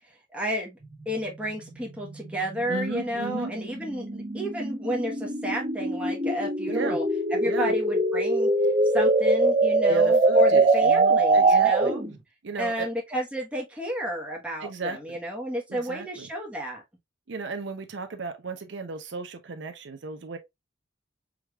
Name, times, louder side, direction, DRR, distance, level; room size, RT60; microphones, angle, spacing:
voice 1, 0.3-0.8 1.0-7.0 7.3-8.5 8.9-12.0 12.5-16.8, equal, 5° right, 1.1 m, -32 dB
sound 1, 0.8-12.2, right 2 dB, 30° right, 1.2 m, -23 dB
voice 2, 2.7-3.5 6.7-7.0 7.4-7.7 9.9-11.9 12.4-12.9 14.6-15.0 15.7-16.3 17.3-20.4, right 4 dB, 65° right, 0.6 m, -35 dB
4.8 x 3.3 x 2.3 m
head